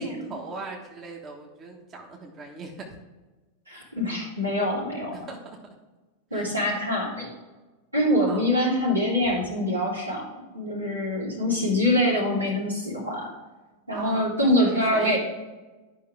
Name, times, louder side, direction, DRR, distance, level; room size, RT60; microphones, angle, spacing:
voice 1, 0.0-2.9 5.3-5.6 6.3-6.5 8.3-8.4 11.8-11.9 13.9-15.2, right 3 dB, 25° right, 1 dB, 1.3 m, -39 dB
voice 2, 3.7-5.1 6.3-7.3 7.9-10.2 10.5-13.3 13.9-15.2, left 1 dB, 85° right, -3 dB, 2.6 m, -24 dB
11.5 x 5.7 x 3.6 m, 1.2 s
figure-of-eight pair, 90°, 0 cm